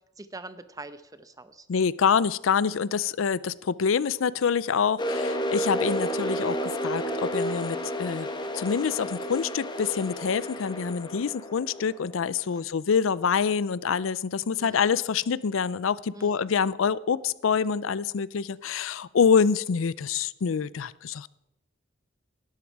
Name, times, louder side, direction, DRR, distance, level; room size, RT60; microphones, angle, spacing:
voice 1, 0.2-1.7 3.0-3.1 12.4-12.7 14.5-14.8 16.1-16.5, right 2 dB, 20° right, 12 dB, 0.8 m, -44 dB
voice 2, 1.7-6.6 6.8-8.3 8.5-21.3, left 6 dB, 85° left, 20 dB, 0.5 m, -26 dB
sound 1, 5.0-12.6, equal, 25° left, 1.5 m, -31 dB
18.5 x 12.5 x 4.7 m, 0.89 s
head